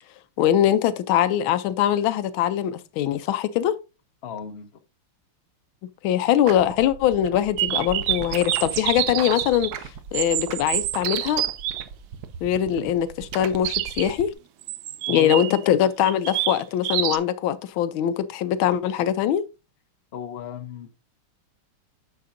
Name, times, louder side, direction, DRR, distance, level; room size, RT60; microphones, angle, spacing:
voice 1, 0.4-3.8 6.0-9.7 10.1-11.4 12.4-14.3 15.1-19.4, left 10 dB, 75° left, 1.3 m, -22 dB
voice 2, 4.2-4.7 15.1-15.6 20.1-20.9, left 7 dB, 60° left, 0.6 m, -35 dB
sound 1, 6.4-14.3, right 7 dB, 65° right, 1.0 m, -37 dB
sound 2, 7.6-9.7 10.1-11.9 13.6-14.1 14.6-15.6 16.0-17.2, right 13 dB, 90° right, 0.9 m, -27 dB
9.3 x 6.7 x 2.5 m
omnidirectional pair, 2.3 m